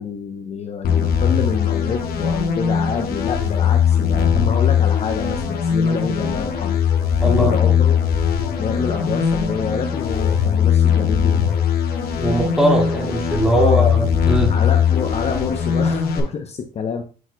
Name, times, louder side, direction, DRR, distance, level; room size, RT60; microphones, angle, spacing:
voice 1, 0.0-6.8 7.2-8.0 8.6-11.5 13.5-13.9 14.5-17.0, left 6 dB, 40° left, 5 dB, 0.7 m, -27 dB
sound 1, 0.8-16.2, left 7 dB, 65° left, 1.4 m, -19 dB
voice 2, 7.2-7.7 12.2-14.5, right 1 dB, 5° right, 0 dB, 2.0 m, -20 dB
8.1 x 6.0 x 2.2 m, 0.36 s
cardioid pair, 110°, 17 cm